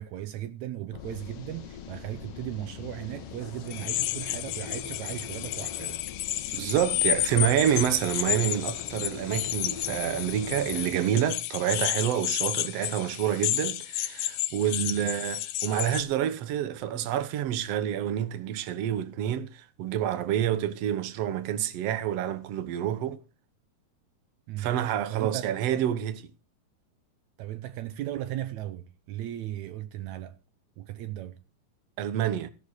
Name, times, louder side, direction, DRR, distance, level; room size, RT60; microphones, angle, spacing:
voice 1, 0.0-6.0 14.8-15.1 24.5-25.6 27.4-30.4 30.8-31.4, right 13 dB, 85° right, 1.6 m, -37 dB
sound 1, 0.9-10.9, left 8 dB, 60° left, 1.7 m, -43 dB
sound 2, 3.7-16.0, left 15 dB, 75° left, 2.3 m, -31 dB
voice 2, 6.5-23.2 24.6-26.2 32.0-32.5, right 10 dB, 70° right, 1.5 m, -28 dB
16.0 x 6.8 x 6.5 m
omnidirectional pair, 4.2 m